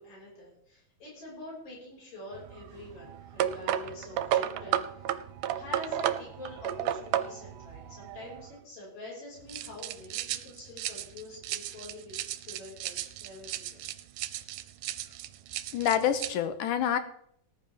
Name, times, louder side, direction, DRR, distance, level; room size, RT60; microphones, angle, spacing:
voice 1, 0.0-5.2 5.5-13.8 15.0-15.2, left 2 dB, 45° left, -5 dB, 6.5 m, -46 dB
sound 1, 2.3-8.6 9.5-16.3, right 11 dB, 85° right, 2.2 m, -34 dB
voice 2, 15.7-17.0, left 9 dB, 80° left, 10 dB, 2.4 m, -27 dB
19.0 x 10.0 x 3.5 m, 0.69 s
omnidirectional pair, 3.7 m